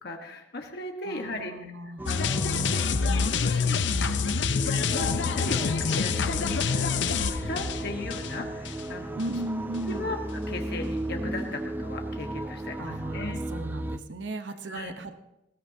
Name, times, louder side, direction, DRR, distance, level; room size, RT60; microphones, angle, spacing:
voice 1, 0.0-1.5 1.8-2.9 3.2-3.8 4.6-9.2 9.9-10.2 10.5-13.4 14.6-14.9, left 2 dB, 60° left, 3 dB, 1.4 m, -37 dB
voice 2, 1.0-2.1 9.1-10.1 12.8-15.2, right 2 dB, 85° right, 8 dB, 0.9 m, -36 dB
sound 1, 2.0-14.0, right 1 dB, 10° right, 0.4 m, -35 dB
sound 2, 2.1-8.9 9.2-9.3, left 5 dB, 75° left, 0.6 m, -27 dB
19.5 x 17.0 x 2.8 m, 0.88 s
head